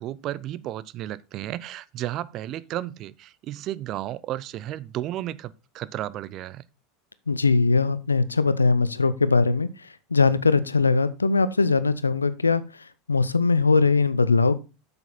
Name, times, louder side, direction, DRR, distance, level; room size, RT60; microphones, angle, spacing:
voice 1, 0.0-6.6, right 13 dB, 45° right, 0.5 m, -33 dB
voice 2, 7.3-9.7 10.1-12.6 13.1-14.6, left 4 dB, 85° left, 0.6 m, -20 dB
8.1 x 7.0 x 4.1 m
figure-of-eight pair, 80°, 0 cm